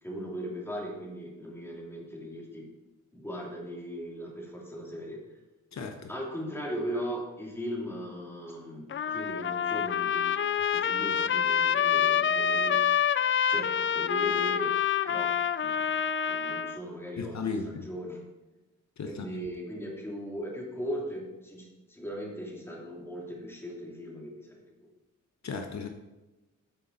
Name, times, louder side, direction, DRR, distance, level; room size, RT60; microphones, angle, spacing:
voice 1, 0.0-2.7 3.1-5.2 6.1-10.4 10.7-12.8 13.5-14.7 15.1-16.0 16.2-18.2 19.1-24.7, equal, 10° left, -2 dB, 2.8 m, -38 dB
voice 2, 5.7-6.1 17.2-17.9 19.0-19.3 25.4-25.9, left 5 dB, 65° left, 5 dB, 1.0 m, -35 dB
Trumpet, 8.9-16.8, left 8 dB, 45° left, 0.4 m, -27 dB
13.0 x 8.6 x 4.1 m, 1.1 s
wide cardioid pair, 125°, 30 cm